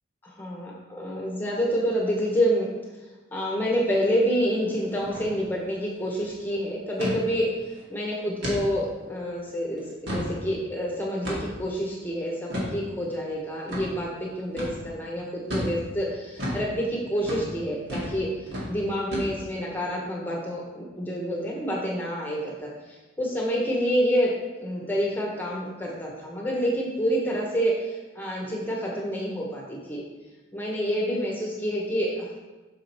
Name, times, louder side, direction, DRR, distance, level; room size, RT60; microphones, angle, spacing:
voice 1, 0.2-2.7 3.3-7.5 7.9-18.3 18.7-30.0 30.5-32.4, equal, 10° left, -3 dB, 1.2 m, -28 dB
sound 1, 5.0-5.3 5.6-5.7 6.0-6.3 7.0-7.2 7.7-7.8 8.4-8.6 9.1-9.2 9.8-10.3 11.2-11.6 12.5-12.7 13.7-13.8 14.6-14.8 15.5-15.7 16.4-16.6 17.2-17.4 17.9-18.2 18.5-18.7 19.1-19.6, equal, 60° right, 2.1 m, -31 dB
6.3 x 4.9 x 4.6 m, 1.2 s
head